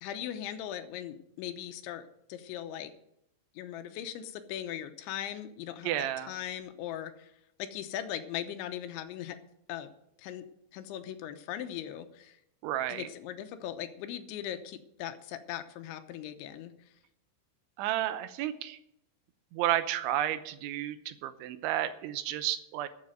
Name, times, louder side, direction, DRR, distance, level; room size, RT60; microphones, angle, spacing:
voice 1, 0.0-2.9 3.6-7.3 7.6-9.4 9.7-9.9 10.2-10.4 10.7-12.4 12.9-16.7, left 11 dB, 80° left, 9 dB, 3.2 m, -39 dB
voice 2, 5.8-6.3 12.6-13.1 17.8-18.8 19.5-22.9, right 12 dB, 85° right, 11 dB, 3.2 m, -32 dB
13.0 x 7.4 x 7.8 m, 0.78 s
omnidirectional pair, 5.4 m